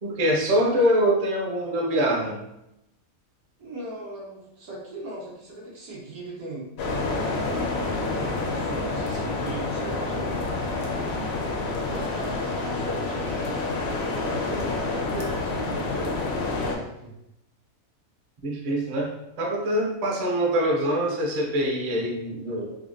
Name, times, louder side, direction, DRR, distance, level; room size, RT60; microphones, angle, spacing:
voice 1, 0.0-2.4 18.4-19.1 19.4-22.8, equal, 50° right, -2 dB, 0.5 m, -24 dB
voice 2, 3.6-6.7 8.1-10.7 11.6-13.7 14.1-17.1, right 1 dB, 85° right, -5 dB, 1.5 m, -38 dB
sound 1, 6.8-16.7, left 3 dB, 65° left, 0.7 m, -28 dB
3.6 x 2.1 x 2.5 m, 0.84 s
omnidirectional pair, 1.5 m